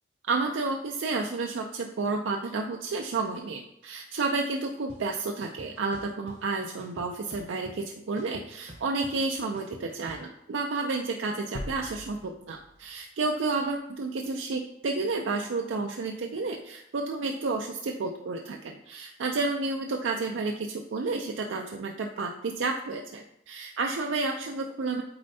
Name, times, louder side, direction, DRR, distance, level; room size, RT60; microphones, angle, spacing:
voice 1, 0.3-25.0, right 3 dB, 80° right, 2 dB, 0.4 m, -31 dB
sound 1, 4.9-5.0 5.4-6.4 6.8-7.9 8.2-10.3, right 1 dB, 35° right, 0.7 m, -47 dB
sound 2, 11.5-13.6, left 1 dB, 70° left, 0.6 m, -41 dB
8.6 x 4.3 x 2.7 m, 0.80 s
head